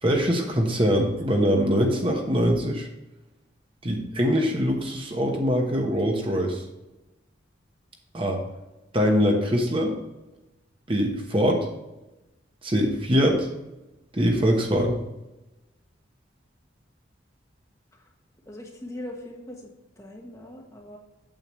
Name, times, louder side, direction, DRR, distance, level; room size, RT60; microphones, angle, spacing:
voice 1, 0.0-2.9 3.8-6.6 8.1-8.4 8.9-9.9 10.9-11.7 12.6-13.5 14.1-15.0, equal, 30° right, 1 dB, 1.2 m, -23 dB
voice 2, 18.5-19.7 20.0-21.0, left 1 dB, 15° left, 0 dB, 1.2 m, -40 dB
8.8 x 7.7 x 3.2 m, 1.0 s
head